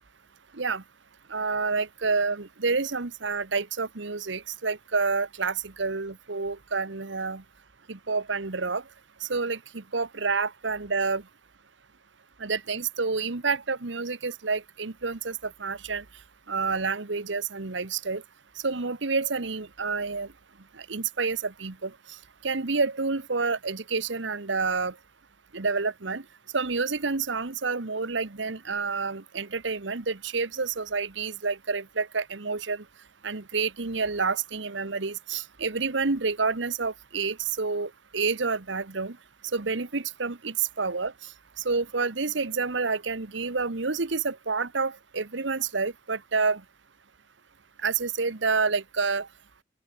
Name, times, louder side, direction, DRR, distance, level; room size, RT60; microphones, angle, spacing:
voice 1, 1.3-7.4 7.9-8.8 9.2-11.2 12.4-16.0 16.5-18.2 18.6-20.3 20.7-21.9 22.4-24.9 25.5-26.2 26.5-32.8 33.2-39.2 39.5-41.3 41.6-46.6 47.8-49.3, right 4 dB, 70° right, 1.2 m, -29 dB
open air
head